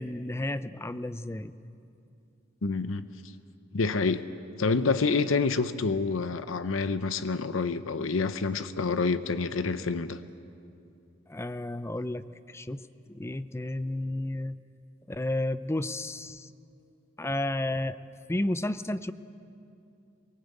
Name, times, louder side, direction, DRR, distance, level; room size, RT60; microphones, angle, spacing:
voice 1, 0.0-1.5 11.3-12.8 13.1-14.6 15.1-16.5 17.2-18.0 18.3-19.1, left 1 dB, 15° left, 13 dB, 0.5 m, -32 dB
voice 2, 2.6-3.1 3.7-4.2 4.6-10.2, left 4 dB, 80° left, 12 dB, 0.7 m, -27 dB
23.0 x 19.0 x 8.3 m, 2.7 s
head